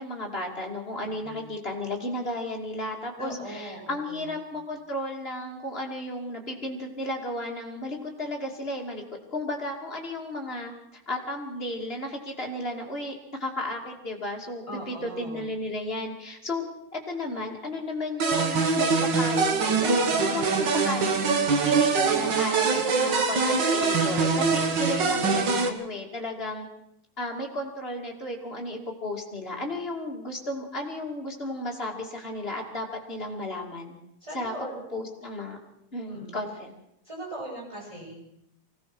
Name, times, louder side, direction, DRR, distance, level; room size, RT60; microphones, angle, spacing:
voice 1, 0.0-9.0 9.3-16.7 16.9-20.0 20.3-26.7 27.2-34.0 34.3-34.5 34.9-35.6 35.9-36.7, left 1 dB, 20° left, 0 dB, 2.4 m, -34 dB
voice 2, 1.0-1.5 3.2-4.4 14.7-15.4 34.2-34.8 36.1-36.4 37.0-38.3, right 1 dB, 10° right, -2 dB, 7.7 m, -39 dB
sound 1, 18.2-25.7, right 4 dB, 50° right, 1.5 m, -23 dB
24.0 x 18.0 x 6.2 m, 0.82 s
omnidirectional pair, 3.9 m